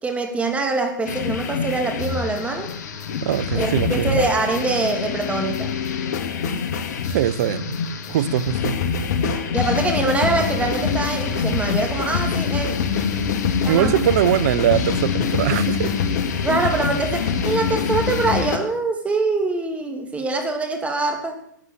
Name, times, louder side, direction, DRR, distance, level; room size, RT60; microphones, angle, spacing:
voice 1, 0.0-2.7 3.5-5.7 9.5-12.8 13.6-14.0 16.4-21.4, right 3 dB, 10° right, 2.7 m, -24 dB
sound 1, 1.0-18.6, left 6 dB, 60° left, 2.2 m, -25 dB
voice 2, 3.2-4.2 7.1-7.8 8.1-8.8 13.7-15.9, right 11 dB, 55° right, 1.0 m, -21 dB
13.5 x 8.1 x 9.7 m
hypercardioid pair, 120°, 10 cm